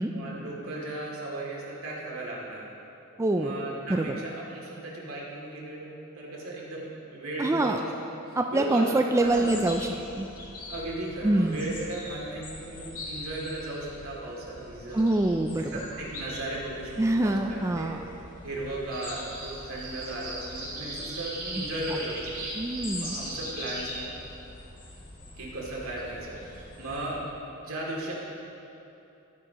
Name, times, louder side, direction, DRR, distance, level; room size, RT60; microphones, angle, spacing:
voice 1, 0.1-2.7 3.4-7.9 8.3-9.6 10.7-15.0 15.7-17.9 18.4-22.3 22.7-24.2 25.4-27.2 27.6-28.1, right 1 dB, 75° right, -4 dB, 2.6 m, -36 dB
voice 2, 3.2-3.6 3.9-4.2 7.4-7.8 8.4-9.9 10.1-10.3 11.2-11.7 14.9-15.8 17.0-18.0 21.6-21.7 22.6-23.2, right 2 dB, 15° right, 4 dB, 0.3 m, -25 dB
sound 1, 9.2-27.2, left 1 dB, 40° left, 2.0 m, -43 dB
sound 2, 18.9-24.0, right 2 dB, 45° right, 2.4 m, -39 dB
14.0 x 12.5 x 3.0 m, 2.9 s
head